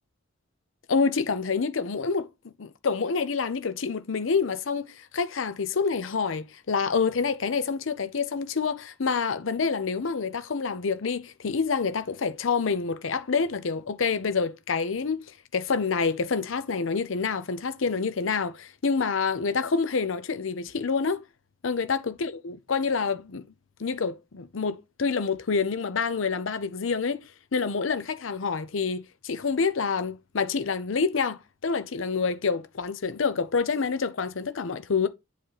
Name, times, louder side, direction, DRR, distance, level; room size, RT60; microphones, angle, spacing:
voice 1, 0.9-21.2 21.6-23.5 23.8-27.3 27.5-35.1, left 5 dB, 80° left, 0.6 m, -27 dB
7.9 x 3.3 x 4.0 m
head